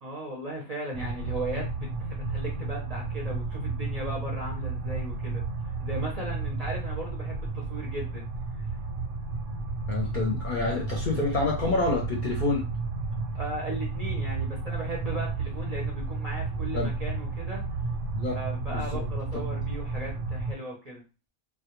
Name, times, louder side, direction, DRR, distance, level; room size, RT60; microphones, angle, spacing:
voice 1, 0.0-8.2 8.6-8.7 13.3-17.6 18.3-21.0, right 1 dB, 45° right, -2 dB, 0.5 m, -37 dB
sound 1, 0.9-20.5, right 3 dB, 85° right, 0.9 m, -32 dB
voice 2, 9.9-12.6 16.7-16.9 18.2-18.4 18.6-19.1, left 3 dB, 55° left, 0 dB, 0.6 m, -28 dB
2.2 x 2.1 x 2.9 m, 0.32 s
omnidirectional pair, 1.2 m